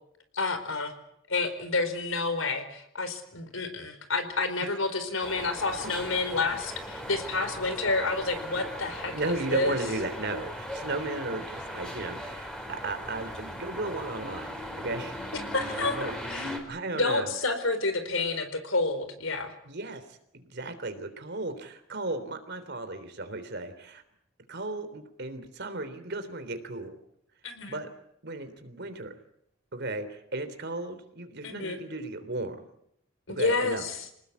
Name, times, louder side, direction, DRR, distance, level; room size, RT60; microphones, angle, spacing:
voice 1, 0.3-0.9 1.3-9.1 9.5-9.7 15.3-16.0 16.3-16.5 16.9-19.5 27.4-27.8 31.4-31.8 33.3-34.0, left 3 dB, 75° left, 9 dB, 4.5 m, -29 dB
Townhall Tower Hannover, 5.2-16.6, equal, 5° left, 4.8 m, -38 dB
voice 2, 9.1-15.2 15.7-16.1 16.7-17.3 19.6-24.0 24.5-27.0 27.7-27.9 28.2-29.1 29.7-32.6 33.3-33.9, right 2 dB, 55° right, 9 dB, 3.4 m, -35 dB
27.5 x 19.5 x 8.4 m, 0.75 s
head